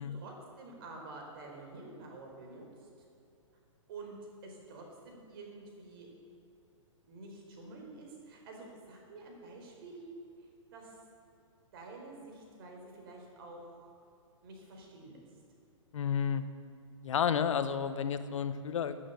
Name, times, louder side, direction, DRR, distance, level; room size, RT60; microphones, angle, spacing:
voice 1, 0.0-2.9 3.9-4.2 4.4-6.1 7.1-10.1 10.7-11.0 11.7-13.9 14.4-15.2, right 3 dB, 45° right, 1 dB, 4.3 m, -49 dB
voice 2, 15.9-16.4 17.0-19.1, left 7 dB, 70° left, 11 dB, 1.1 m, -31 dB
17.5 x 9.4 x 8.1 m, 2.6 s
hypercardioid pair, 160°, 17 cm